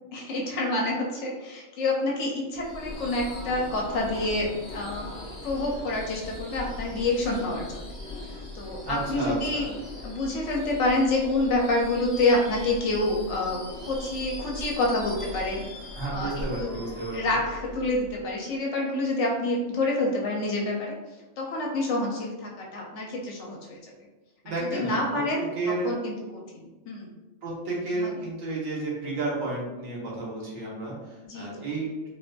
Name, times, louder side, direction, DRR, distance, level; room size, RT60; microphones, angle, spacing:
voice 1, 0.1-5.1 5.4-7.8 8.5-9.7 10.0-15.6 16.1-16.3 16.6-16.8 17.1-20.9 21.4-23.8 24.6-27.1 27.9-28.1 31.2-31.7, left 2 dB, 65° left, -1 dB, 0.9 m, -28 dB
Subway metro underground / Screech, 2.5-18.5, left 2 dB, 5° left, 1.1 m, -40 dB
voice 2, 8.8-9.7 15.9-17.2 24.4-25.2 25.6-25.9 27.4-32.1, right 2 dB, 85° right, -4 dB, 1.4 m, -31 dB
3.9 x 2.4 x 2.2 m, 1.1 s
omnidirectional pair, 1.4 m